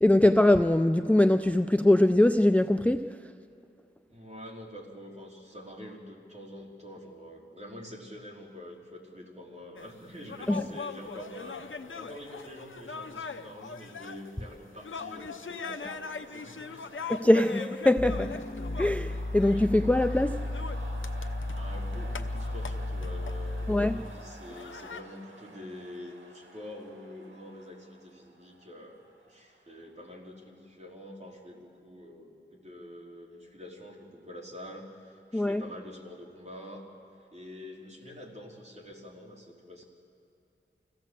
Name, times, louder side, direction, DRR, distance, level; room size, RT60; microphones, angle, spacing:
voice 1, 0.0-3.2 10.5-10.6 17.1-18.5 18.8-20.4 23.7-24.0 35.3-35.6, left 1 dB, 5° left, 0.4 m, -22 dB
voice 2, 4.1-16.9 21.5-36.9 37.3-39.8, left 1 dB, 35° right, 3.7 m, -46 dB
sound 1, 9.8-25.0, left 5 dB, 85° left, 0.8 m, -42 dB
sound 2, 13.9-30.5, right 2 dB, 85° right, 2.0 m, -52 dB
sound 3, 18.0-24.1, left 1 dB, 55° left, 1.5 m, -34 dB
25.5 x 16.0 x 7.6 m
wide cardioid pair, 60°, 20 cm